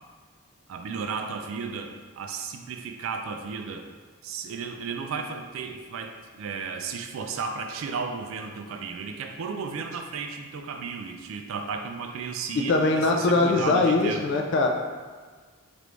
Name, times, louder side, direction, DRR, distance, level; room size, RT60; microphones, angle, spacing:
voice 1, 0.7-3.9 4.2-14.2, right 5 dB, 70° right, 5 dB, 0.3 m, -34 dB
voice 2, 12.5-14.7, left 3 dB, 55° left, 1 dB, 0.3 m, -22 dB
3.3 x 2.5 x 3.0 m, 1.5 s
head